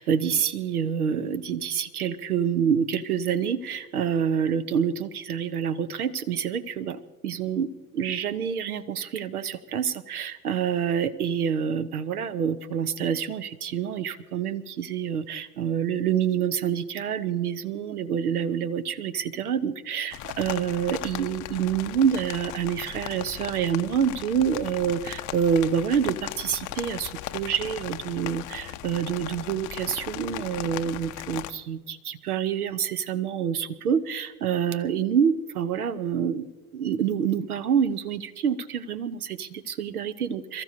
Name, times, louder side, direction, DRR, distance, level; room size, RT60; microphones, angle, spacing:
voice 1, 0.0-36.5 36.7-40.6, right 8 dB, 75° right, 13 dB, 0.8 m, -27 dB
sound 1, 20.1-31.5, left 14 dB, 45° left, 0.7 m, -37 dB
27.5 x 14.5 x 2.7 m, 1.2 s
figure-of-eight pair, 60°, 44 cm